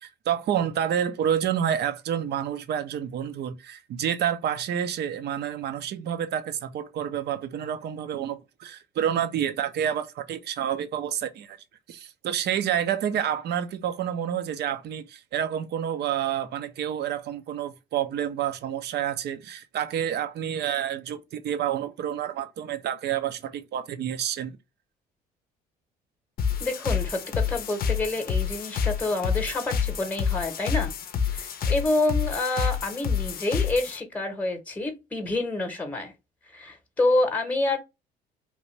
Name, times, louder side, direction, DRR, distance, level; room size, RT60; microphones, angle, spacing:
voice 1, 0.0-11.6 11.9-24.6, right 9 dB, 55° right, 0.6 m, -29 dB
sound 1, 26.4-34.0, left 7 dB, 45° left, 0.6 m, -28 dB
voice 2, 26.6-30.9 31.3-36.1 36.5-37.8, left 2 dB, 10° left, 0.9 m, -28 dB
2.9 x 2.5 x 3.1 m
hypercardioid pair, 55°, 20 cm